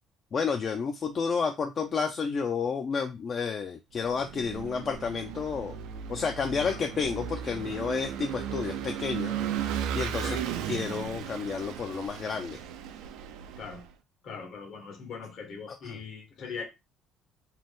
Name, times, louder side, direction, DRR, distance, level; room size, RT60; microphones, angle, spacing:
voice 1, 0.3-5.8 6.1-9.4 9.9-10.4 10.7-12.6 15.8-16.0, left 5 dB, 45° left, 0.4 m, -31 dB
Vehicle / Engine, 4.1-13.9, right 9 dB, 80° right, 0.4 m, -35 dB
voice 2, 10.2-10.5 13.6-13.8 14.2-16.7, left 5 dB, 65° left, 1.1 m, -41 dB
2.7 x 2.1 x 3.4 m
supercardioid pair, 75°, 0 cm